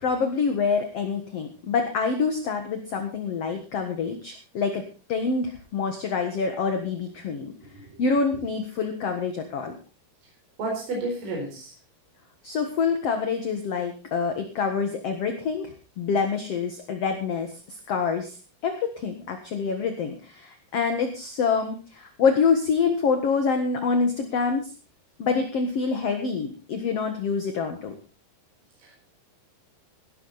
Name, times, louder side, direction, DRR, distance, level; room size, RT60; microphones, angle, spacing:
voice 1, 0.0-4.8 5.1-7.5 8.0-9.8 12.4-24.7 25.2-27.9, left 5 dB, 55° left, 6 dB, 1.9 m, -26 dB
voice 2, 10.6-11.7 28.9-29.0, right 2 dB, 55° right, -1 dB, 5.9 m, -31 dB
17.0 x 12.5 x 4.2 m, 0.34 s
omnidirectional pair, 4.8 m